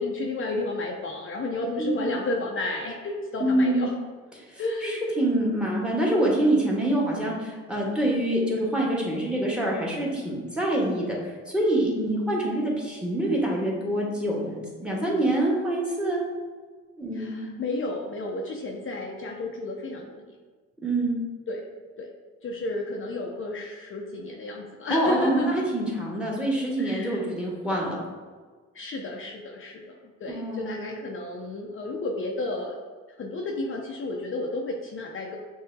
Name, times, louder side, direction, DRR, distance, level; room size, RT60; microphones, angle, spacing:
voice 1, 0.0-3.9 4.6-5.0 17.2-20.3 21.5-21.6 22.0-22.1 22.4-25.5 26.8-27.2 28.7-32.8 33.2-35.4, left 2 dB, 45° left, 0 dB, 0.6 m, -32 dB
voice 2, 1.8-2.1 3.4-3.9 4.4-16.2 17.0-17.4 20.8-21.2 24.9-28.0 30.3-30.7, right 1 dB, 5° right, -2 dB, 1.2 m, -26 dB
6.4 x 2.7 x 2.6 m, 1.5 s
cardioid pair, 90°, 30 cm